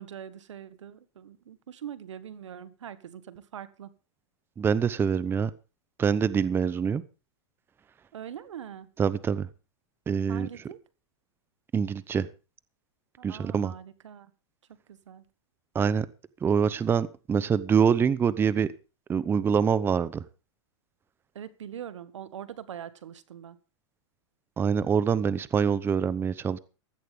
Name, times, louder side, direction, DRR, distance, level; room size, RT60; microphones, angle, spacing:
voice 1, 0.0-3.9 8.1-8.9 10.3-10.8 13.2-14.3 14.9-15.2 21.3-23.6, right 9 dB, 85° right, 14 dB, 1.6 m, -42 dB
voice 2, 4.6-5.5 6.0-7.0 9.0-9.5 10.1-10.5 11.7-12.3 13.2-13.7 15.7-16.1 16.4-18.7 19.1-20.2 24.6-26.6, right 7 dB, 15° right, 17 dB, 0.7 m, -25 dB
16.0 x 15.0 x 3.5 m, 0.34 s
hypercardioid pair, 135°, 15 cm